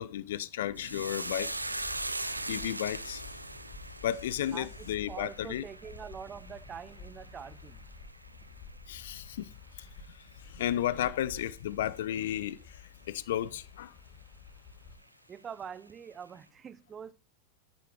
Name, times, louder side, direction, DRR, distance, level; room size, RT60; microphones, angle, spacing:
voice 1, 0.0-1.5 2.4-3.2 4.0-5.6 8.9-9.5 10.5-12.6 13.1-13.9, left 11 dB, 55° left, 0.6 m, -33 dB
sound 1, 0.6-15.0, left 4 dB, 35° left, 4.5 m, -51 dB
sound 2, 0.8-9.4 9.7-10.3 10.6-10.8, right 2 dB, 85° right, 0.7 m, -41 dB
voice 2, 4.5-7.8 15.3-17.1, right 7 dB, 20° right, 0.6 m, -44 dB
10.5 x 8.6 x 4.5 m
figure-of-eight pair, 90°, 0 cm